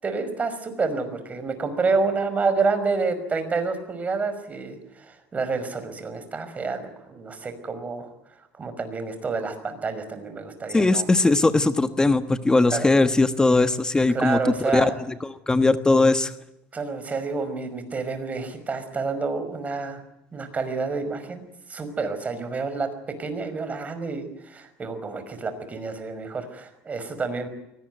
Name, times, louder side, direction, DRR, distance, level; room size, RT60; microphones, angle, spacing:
voice 1, 0.0-8.1 8.5-11.1 12.7-12.9 14.1-15.0 16.7-20.0 20.3-21.4 21.7-22.9 23.2-27.5, right 4 dB, 25° right, 9 dB, 5.5 m, -28 dB
voice 2, 10.7-14.9 15.2-16.3, left 3 dB, 15° left, 10 dB, 1.2 m, -20 dB
23.0 x 19.0 x 9.4 m, 0.85 s
supercardioid pair, 105°, 6 cm